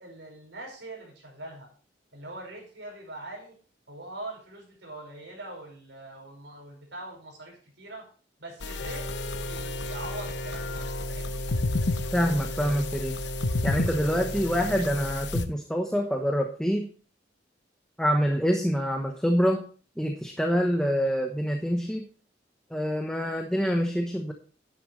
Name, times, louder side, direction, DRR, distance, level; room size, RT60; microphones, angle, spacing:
voice 1, 0.0-1.7 2.1-3.6 3.9-8.1 8.4-11.5, right 2 dB, 70° right, 0 dB, 5.2 m, -42 dB
sound 1, 8.6-15.5, left 3 dB, 70° left, 0.9 m, -31 dB
sound 2, 8.8-15.1, right 1 dB, 55° left, 2.7 m, -37 dB
voice 2, 12.1-13.2 13.6-16.9 18.0-19.7 20.0-22.1 22.7-24.3, equal, 5° left, 2 dB, 1.0 m, -26 dB
10.0 x 10.0 x 3.2 m, 0.39 s
head